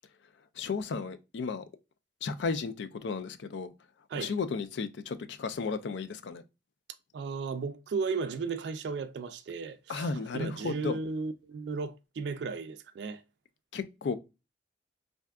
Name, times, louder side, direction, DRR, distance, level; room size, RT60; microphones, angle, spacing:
voice 1, 0.6-1.6 2.2-3.7 4.2-6.4 9.9-11.0 13.7-14.2, left 4 dB, 85° left, 0.4 m, -34 dB
voice 2, 7.1-13.2, right 4 dB, 75° right, 0.3 m, -35 dB
3.4 x 2.6 x 2.3 m
head